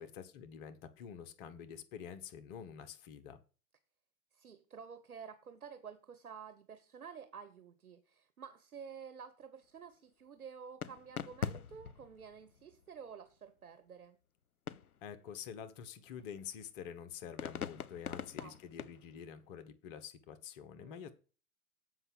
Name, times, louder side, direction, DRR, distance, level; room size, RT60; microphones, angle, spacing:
voice 1, 0.0-3.4 15.0-21.1, left 8 dB, 40° left, 1.2 m, -48 dB
voice 2, 4.3-14.2 18.1-18.9 20.8-21.0, right 6 dB, 85° right, 1.2 m, -51 dB
sound 1, 10.8-12.8 14.7-15.1 15.6-16.8 17.4-19.5, left 7 dB, 90° left, 0.7 m, -43 dB
8.0 x 5.6 x 7.4 m
hypercardioid pair, 120°, 43 cm